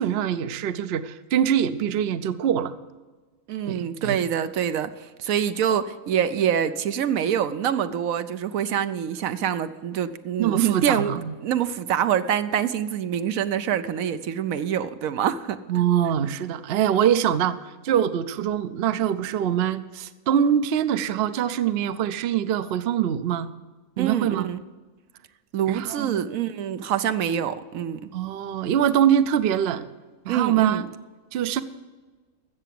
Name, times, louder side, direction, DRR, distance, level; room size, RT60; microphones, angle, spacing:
voice 1, 0.0-2.7 3.7-4.2 10.4-11.3 15.7-17.6 17.8-23.5 24.0-24.5 25.7-26.3 28.1-29.9 30.2-30.8 31.3-31.6, right 9 dB, 55° right, 13 dB, 0.7 m, -24 dB
voice 2, 3.5-15.6 24.0-24.6 25.5-28.1 30.3-30.9, right 9 dB, 75° right, 11 dB, 1.1 m, -25 dB
15.5 x 6.9 x 7.6 m, 1.3 s
omnidirectional pair, 1.5 m